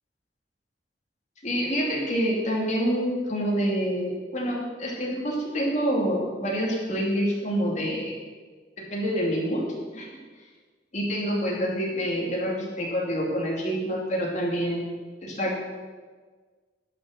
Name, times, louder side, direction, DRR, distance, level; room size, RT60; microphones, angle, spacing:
voice 1, 1.4-8.2 8.9-9.6 9.9-10.1 10.9-15.6, equal, 45° left, -3 dB, 2.7 m, -27 dB
11.0 x 6.3 x 6.6 m, 1.4 s
head